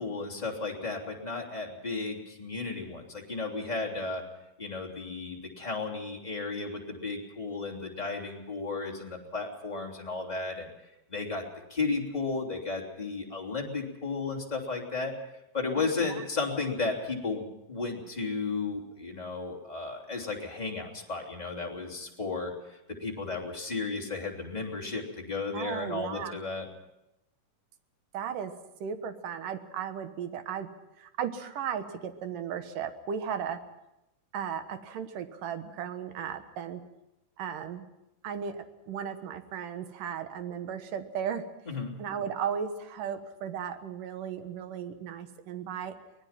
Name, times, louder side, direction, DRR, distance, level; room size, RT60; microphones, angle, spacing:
voice 1, 0.0-4.2 4.6-10.7 11.1-11.4 11.7-15.1 15.5-26.7 41.7-41.9, left 4 dB, 10° left, -1 dB, 2.8 m, -34 dB
voice 2, 15.8-16.2 25.5-26.4 28.1-28.5 28.8-30.7 31.0-33.6 34.3-36.8 37.4-37.8 38.2-41.4 42.0-45.9, right 8 dB, 80° right, 9 dB, 3.0 m, -35 dB
24.0 x 19.5 x 5.9 m, 0.91 s
omnidirectional pair, 3.8 m